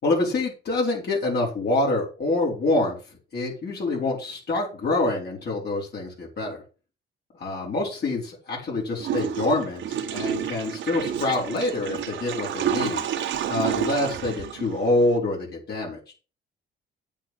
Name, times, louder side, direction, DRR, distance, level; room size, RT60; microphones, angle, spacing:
voice 1, 0.0-2.9 3.3-6.6 7.4-13.0 13.5-16.0, left 2 dB, 55° left, -3 dB, 5.1 m, -26 dB
Water / Toilet flush, 9.0-15.2, right 9 dB, 75° right, 1.7 m, -30 dB
8.9 x 8.4 x 6.3 m, 0.35 s
cardioid pair, 90°, 20 cm